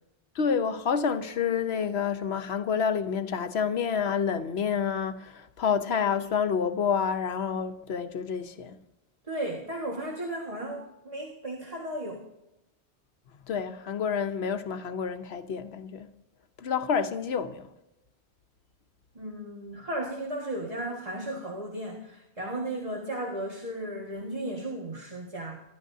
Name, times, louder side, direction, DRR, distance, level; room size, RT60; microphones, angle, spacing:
voice 1, 0.3-8.8 13.5-16.1 16.6-17.7, left 6 dB, 70° left, 1.1 m, -28 dB
voice 2, 9.3-12.2 19.2-25.6, right 1 dB, 35° right, 1.8 m, -35 dB
24.5 x 12.5 x 2.7 m
omnidirectional pair, 1.1 m